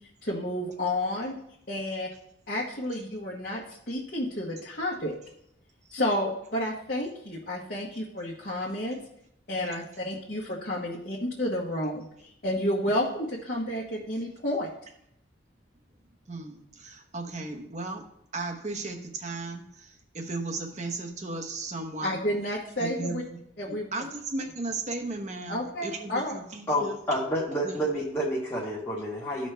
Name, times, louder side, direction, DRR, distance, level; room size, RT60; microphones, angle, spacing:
voice 1, 0.2-1.3 1.7-2.1 2.5-5.2 5.9-9.0 9.5-14.7 22.0-23.2 23.6-23.9 25.5-26.4, left 1 dB, 50° left, -5 dB, 1.2 m, -31 dB
voice 2, 16.3-18.0 18.3-22.2 22.8-23.4 23.7-27.0 27.6-27.8, right 3 dB, 35° right, 3 dB, 1.0 m, -35 dB
voice 3, 26.7-29.5, equal, 10° left, -6 dB, 1.2 m, -29 dB
13.5 x 5.3 x 3.4 m, 0.75 s
head